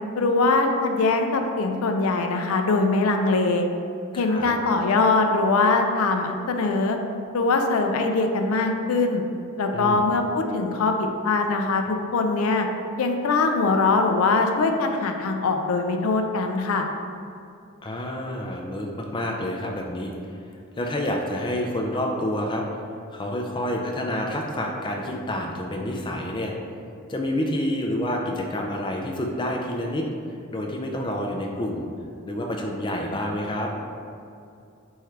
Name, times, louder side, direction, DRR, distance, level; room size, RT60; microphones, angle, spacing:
voice 1, 0.2-3.7 4.2-7.0 7.3-9.2 9.6-12.7 13.0-16.9, left 3 dB, 85° left, 4 dB, 0.4 m, -22 dB
voice 2, 4.2-4.5 9.7-10.0 17.8-20.1 20.8-22.6 23.1-26.5 27.1-30.1 30.5-31.8 32.2-33.7, left 1 dB, 20° left, 0 dB, 0.4 m, -28 dB
3.6 x 3.2 x 4.4 m, 2.5 s
head